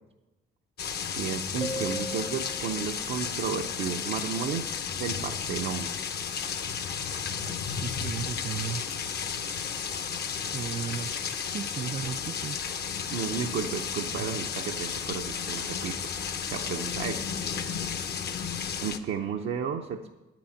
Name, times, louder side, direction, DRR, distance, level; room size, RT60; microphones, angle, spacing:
sound 1, 0.8-19.0, left 7 dB, 55° left, 0.8 m, -33 dB
voice 1, 1.2-4.7 5.0-5.9 13.1-16.0 16.5-17.2 18.8-20.1, right 7 dB, 70° right, 3 dB, 0.7 m, -33 dB
sound 2, 1.6-3.1, equal, 20° left, 0.5 m, -37 dB
voice 2, 7.4-8.9 10.5-12.6, right 8 dB, 35° right, 16 dB, 0.4 m, -36 dB
9.2 x 6.1 x 8.4 m, 1.1 s
cardioid pair, 90°, 20 cm